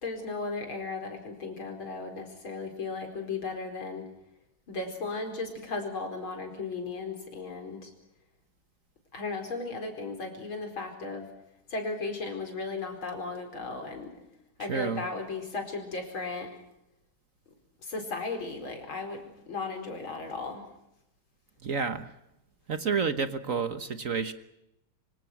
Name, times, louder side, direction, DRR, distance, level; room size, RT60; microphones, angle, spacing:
voice 1, 0.0-4.0 4.7-7.9 9.1-11.3 11.7-14.1 14.6-16.5 17.8-20.6, left 3 dB, 85° left, 5 dB, 5.4 m, -36 dB
voice 2, 14.7-15.0 21.6-22.1 22.7-24.3, right 5 dB, 45° right, 10 dB, 1.4 m, -29 dB
26.0 x 25.5 x 6.1 m, 0.87 s
omnidirectional pair, 2.2 m